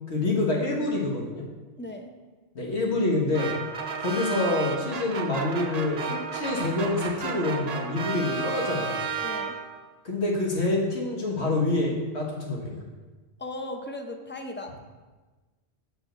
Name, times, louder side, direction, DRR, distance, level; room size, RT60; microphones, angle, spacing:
voice 1, 0.1-1.4 2.5-3.5 4.0-9.0 10.0-12.8, left 2 dB, 75° left, -2 dB, 1.7 m, -27 dB
voice 2, 1.8-2.1 9.2-9.6 13.4-14.8, left 1 dB, 15° left, 4 dB, 0.5 m, -37 dB
sound 1, 3.3-9.9, right 5 dB, 45° right, 0.6 m, -33 dB
7.0 x 4.6 x 6.6 m, 1.3 s
omnidirectional pair, 1.2 m